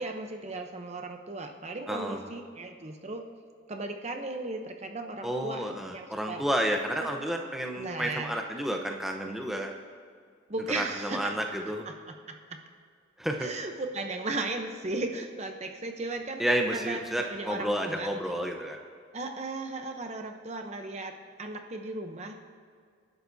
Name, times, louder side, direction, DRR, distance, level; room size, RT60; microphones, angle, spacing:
voice 1, 0.0-3.3 3.7-6.4 7.8-8.3 10.5-11.3 12.3-12.6 13.4-16.4 16.7-18.1 19.1-22.3, right 2 dB, 30° right, 4 dB, 0.7 m, -36 dB
voice 2, 1.9-2.2 5.2-9.7 10.7-11.9 13.2-13.5 16.4-18.8, equal, ahead, 1 dB, 0.8 m, -31 dB
26.5 x 11.0 x 2.7 m, 2.1 s
head